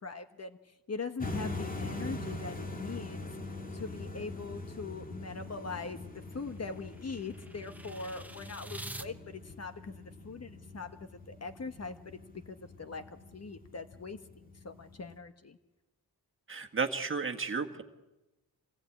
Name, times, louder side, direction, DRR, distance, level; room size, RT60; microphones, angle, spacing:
voice 1, 0.0-3.3 3.7-12.2 12.5-15.6, left 4 dB, 40° left, 8 dB, 1.3 m, -42 dB
sound 1, 1.2-15.2, left 2 dB, 20° left, 2.1 m, -43 dB
sound 2, 5.5-9.1, right 1 dB, 5° right, 1.0 m, -47 dB
voice 2, 16.5-17.8, right 5 dB, 35° right, 4 dB, 1.7 m, -33 dB
25.5 x 18.5 x 8.6 m, 1.0 s
wide cardioid pair, 110°, 37 cm